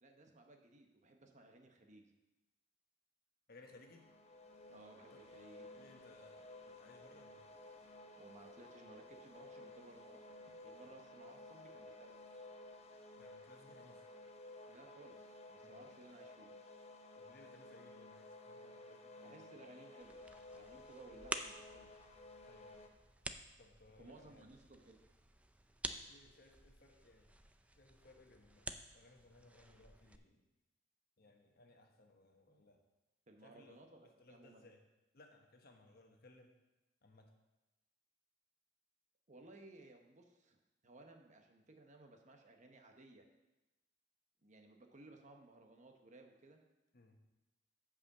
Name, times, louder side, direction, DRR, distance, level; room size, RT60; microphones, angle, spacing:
voice 1, 0.0-2.0 4.7-5.8 8.2-12.3 14.7-16.5 19.2-20.2 20.5-21.9 24.0-25.0 32.5-32.6 33.3-34.7 39.3-40.6 40.8-43.3 44.4-46.6, right 2 dB, 40° right, 4 dB, 1.0 m, -59 dB
voice 2, 3.5-4.1 5.1-5.2 5.7-7.5 13.2-14.2 15.6-15.8 17.1-19.6 22.4-22.8 23.6-24.5 26.1-27.3 27.7-30.5 31.2-32.8 33.4-34.8 35.1-36.5 37.0-37.3 46.9-47.2, left 2 dB, 50° left, 3 dB, 1.2 m, -63 dB
sound 1, 3.7-22.9, left 2 dB, 35° left, 0.7 m, -55 dB
sound 2, 20.0-30.2, right 2 dB, 5° right, 0.4 m, -50 dB
8.3 x 5.0 x 7.1 m, 1.0 s
head